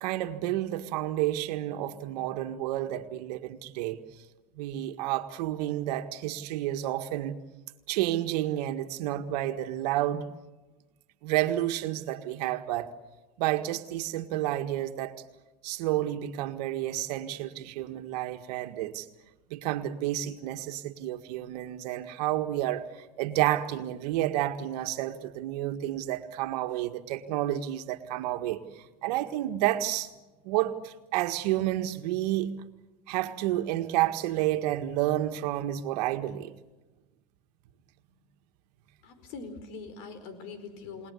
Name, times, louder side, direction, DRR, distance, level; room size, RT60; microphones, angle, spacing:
voice 1, 0.0-4.0 4.6-7.4 7.9-10.2 11.2-12.9 13.4-15.2 15.6-19.1 19.5-30.1 30.4-32.6 33.1-36.5, right 14 dB, 75° right, 1.8 m, -30 dB
voice 2, 39.0-41.1, left 4 dB, 65° left, 4.8 m, -42 dB
29.5 x 19.5 x 8.4 m
hypercardioid pair, 90°, 21 cm